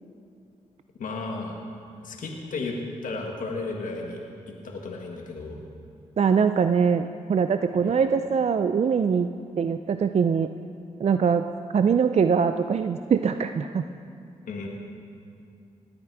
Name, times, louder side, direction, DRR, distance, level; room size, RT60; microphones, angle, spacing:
voice 1, 1.0-1.6 2.0-2.8 3.0-4.2 4.5-5.6 7.8-8.1 14.4-14.7, left 3 dB, 70° left, 1 dB, 1.7 m, -34 dB
voice 2, 6.2-9.3 9.6-10.5 11.0-11.5 11.7-13.8, right 6 dB, 50° right, 9 dB, 0.5 m, -22 dB
19.0 x 8.8 x 4.8 m, 2.6 s
cardioid pair, 55°, 14 cm